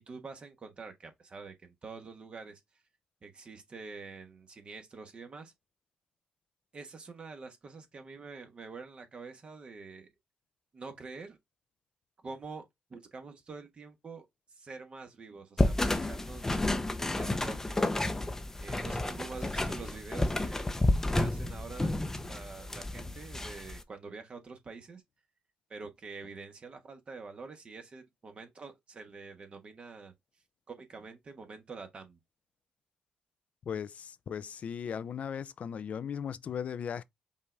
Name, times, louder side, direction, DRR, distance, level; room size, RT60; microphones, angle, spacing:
voice 1, 0.0-2.6 3.2-5.5 6.7-10.1 10.7-11.4 12.2-14.3 14.5-16.8 17.1-17.9 18.6-20.8 21.1-25.0 25.7-30.1 30.7-32.2, right 4 dB, 45° right, 1.3 m, -46 dB
sound 1, 15.6-23.8, left 2 dB, 15° left, 0.7 m, -31 dB
voice 2, 33.6-37.0, left 8 dB, 60° left, 0.4 m, -37 dB
5.4 x 2.5 x 3.3 m
cardioid pair, 75°, 3 cm